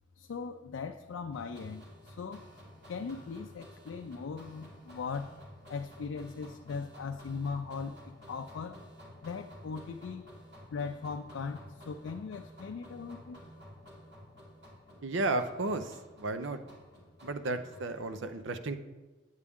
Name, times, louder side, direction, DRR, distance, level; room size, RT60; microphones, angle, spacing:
voice 1, 0.2-2.4 2.9-5.3 5.7-8.8 9.2-10.3 10.7-13.4, left 5 dB, 80° left, 6 dB, 0.4 m, -39 dB
sound 1, 1.3-18.0, equal, 55° right, 2.0 m, -52 dB
voice 2, 15.0-16.6 17.2-18.8, right 2 dB, 75° right, 9 dB, 0.6 m, -33 dB
8.5 x 8.1 x 3.6 m, 1.2 s
head